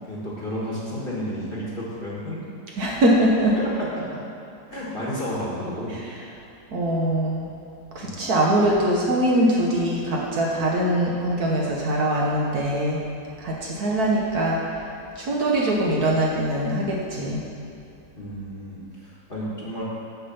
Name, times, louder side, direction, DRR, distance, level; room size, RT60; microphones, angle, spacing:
voice 1, 0.1-2.4 3.5-4.2 4.7-6.0 8.0-8.2 18.2-19.8, equal, 30° left, -6 dB, 1.4 m, -32 dB
voice 2, 2.8-3.5 5.9-6.0 6.7-7.5 7.9-13.0 13.4-14.6 15.2-17.4, right 1 dB, 60° right, -3 dB, 1.4 m, -22 dB
6.5 x 5.6 x 6.9 m, 2.7 s
omnidirectional pair, 2.0 m